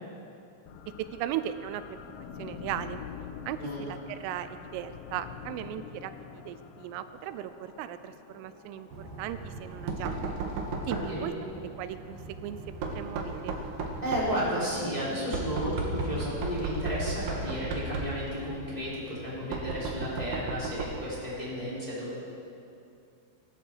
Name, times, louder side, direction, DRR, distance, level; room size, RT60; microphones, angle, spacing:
sound 1, 0.7-12.6, left 7 dB, 75° left, 2.9 m, -47 dB
voice 1, 1.1-2.0 2.4-3.0 3.5-10.4 10.9-11.3 11.8-12.6 12.9-13.6, right 11 dB, 85° right, 12 dB, 3.2 m, -37 dB
Knock, 8.9-21.1, right 2 dB, 65° right, 2.2 m, -36 dB
voice 2, 10.8-11.2 14.0-22.2, equal, 10° left, -8 dB, 3.0 m, -33 dB
21.5 x 12.5 x 4.6 m, 2.5 s
omnidirectional pair, 5.7 m